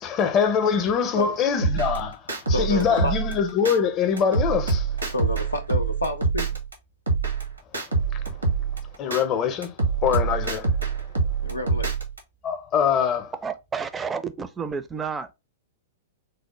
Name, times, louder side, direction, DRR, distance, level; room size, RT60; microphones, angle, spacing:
voice 1, 0.0-2.2 2.5-4.8 9.0-9.7 10.0-10.6 12.4-13.3, left 7 dB, 35° left, 0.6 m, -23 dB
sound 1, 1.6-3.8 4.2-6.7 7.1-9.2 9.6-12.2, right 4 dB, 85° right, 0.9 m, -25 dB
voice 2, 2.5-3.1 5.1-6.6 11.4-11.9, left 1 dB, 85° left, 0.4 m, -29 dB
voice 3, 13.4-15.3, right 6 dB, 15° right, 0.4 m, -30 dB
3.3 x 2.1 x 2.9 m
figure-of-eight pair, 105°, 0 cm